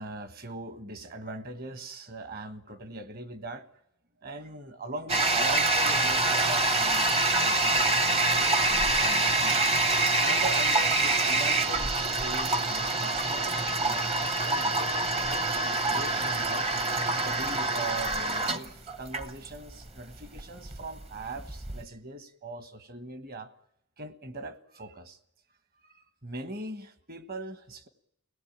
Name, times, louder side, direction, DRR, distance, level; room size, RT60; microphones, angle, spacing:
voice 1, 0.0-3.7 4.2-9.6 10.0-16.7 17.1-23.5 24.0-25.2 25.8-27.9, right 2 dB, 40° right, 11 dB, 1.4 m, -40 dB
Toilet flush, 5.1-21.8, right 2 dB, 25° right, 0.8 m, -26 dB
24.5 x 18.0 x 8.8 m, 0.81 s
head